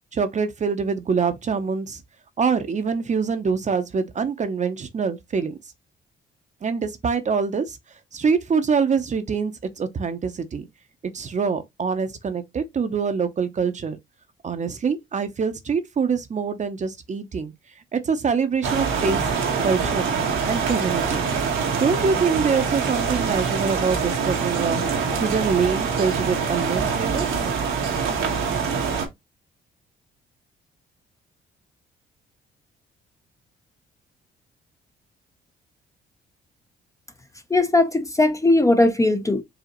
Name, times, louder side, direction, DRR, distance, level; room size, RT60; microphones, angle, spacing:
voice 1, 0.1-2.0 2.4-5.6 6.6-7.8 8.1-10.7 11.1-14.0 14.4-17.5 17.9-19.2 19.6-20.1 20.4-21.2 21.8-27.3, right 5 dB, 35° right, 0.7 m, -25 dB
sound 1, 18.6-29.1, right 5 dB, 90° right, 1.3 m, -24 dB
voice 2, 37.5-39.4, left 2 dB, 15° left, 0.6 m, -18 dB
4.9 x 2.8 x 3.0 m
cardioid pair, 90°, 20 cm